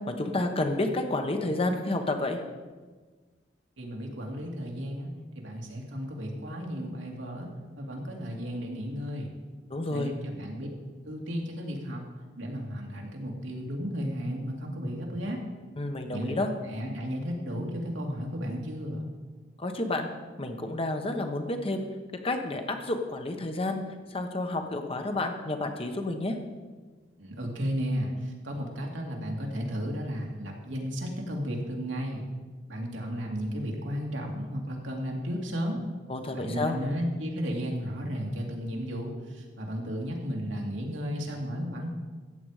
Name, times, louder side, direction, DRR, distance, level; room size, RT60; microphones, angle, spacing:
voice 1, 0.1-2.4 9.7-10.1 15.8-16.5 19.6-20.1 20.4-21.8 22.2-23.8 24.1-26.3 36.1-36.8, left 2 dB, 30° left, 5 dB, 1.1 m, -30 dB
voice 2, 3.8-7.5 7.8-9.3 9.9-10.7 11.0-12.0 12.4-15.4 16.1-16.3 16.7-19.0 27.2-32.2 32.7-35.8 36.3-41.9, equal, 80° right, 0 dB, 2.4 m, -34 dB
14.0 x 8.7 x 4.9 m, 1.4 s
head